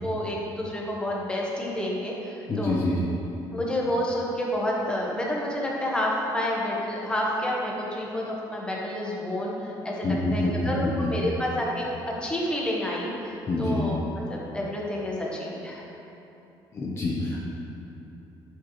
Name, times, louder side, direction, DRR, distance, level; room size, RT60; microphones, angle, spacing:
voice 1, 0.0-2.9 3.5-14.0 14.3-15.8, left 1 dB, 10° left, -3 dB, 1.2 m, -29 dB
voice 2, 2.5-3.0 10.0-10.9 13.5-13.8 16.7-17.4, left 2 dB, 30° left, -4 dB, 0.8 m, -26 dB
10.5 x 6.4 x 3.1 m, 2.9 s
cardioid pair, 150°, 9 cm